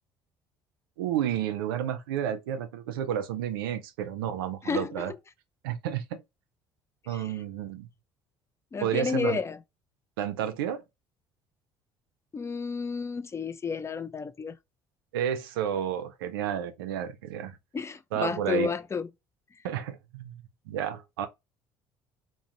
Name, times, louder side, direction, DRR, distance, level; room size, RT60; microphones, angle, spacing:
voice 1, 1.0-5.1 5.6-6.2 7.1-7.9 8.8-9.4 10.2-10.8 15.1-17.6 18.1-18.7 19.6-20.4 20.7-21.3, right 10 dB, 85° right, 0.4 m, -31 dB
voice 2, 4.6-5.0 7.1-7.3 8.7-9.6 12.3-14.6 17.7-19.1, left 5 dB, 25° left, 0.3 m, -31 dB
2.5 x 2.0 x 2.7 m
hypercardioid pair, 65°, 12 cm